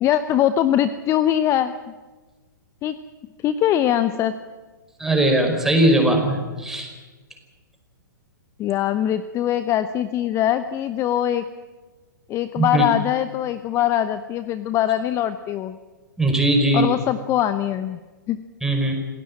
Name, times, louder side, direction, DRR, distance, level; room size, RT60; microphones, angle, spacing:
voice 1, 0.0-1.9 2.8-2.9 3.4-4.3 8.6-11.4 12.3-15.8 16.7-18.0 18.3-18.4, left 11 dB, 25° left, 12 dB, 0.9 m, -22 dB
voice 2, 5.0-6.9 12.6-12.9 16.2-16.9 18.6-18.9, right 1 dB, 5° right, 2 dB, 5.2 m, -19 dB
27.0 x 17.0 x 8.8 m, 1.3 s
figure-of-eight pair, 115°, 11 cm